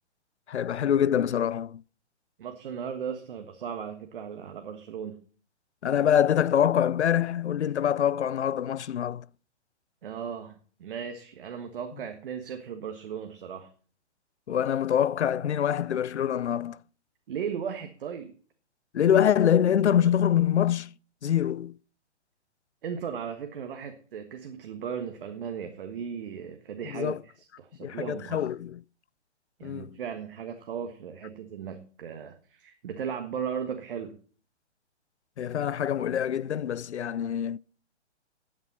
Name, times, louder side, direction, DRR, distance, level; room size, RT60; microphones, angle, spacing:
voice 1, 0.5-1.8 5.8-9.3 14.5-16.8 18.9-20.9 21.2-21.7 26.9-27.2 27.8-28.8 29.6-30.0 35.4-37.6, left 9 dB, 75° left, 0.5 m, -25 dB
voice 2, 2.4-5.2 10.0-10.5 10.8-13.7 17.3-18.3 22.8-28.5 29.6-34.2, right 7 dB, 50° right, 1.5 m, -36 dB
13.5 x 9.0 x 4.3 m
figure-of-eight pair, 130°, 35 cm